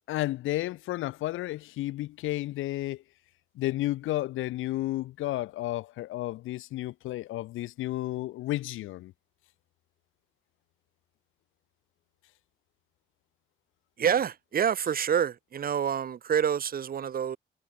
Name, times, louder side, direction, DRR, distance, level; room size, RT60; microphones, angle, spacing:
voice 1, 0.1-3.0 3.5-9.1, left 16 dB, 85° left, 1.1 m, -32 dB
voice 2, 14.0-17.4, right 8 dB, 45° right, 1.0 m, -27 dB
cardioid pair, 90°, 20 cm